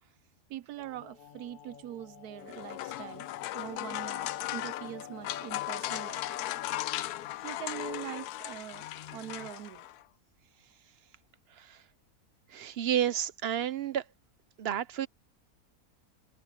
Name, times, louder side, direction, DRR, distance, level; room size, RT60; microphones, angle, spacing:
voice 1, 0.5-3.3 3.5-6.4 7.4-8.9 9.1-9.9, right 12 dB, 80° right, 1.1 m, -43 dB
sound 1, 0.8-7.7 8.0-8.1 8.7-9.5, left 7 dB, 45° left, 0.7 m, -50 dB
sound 2, 2.4-10.0, left 15 dB, 85° left, 1.1 m, -37 dB
voice 2, 12.5-14.0 14.6-15.1, right 10 dB, 55° right, 0.7 m, -31 dB
omnidirectional pair, 1.6 m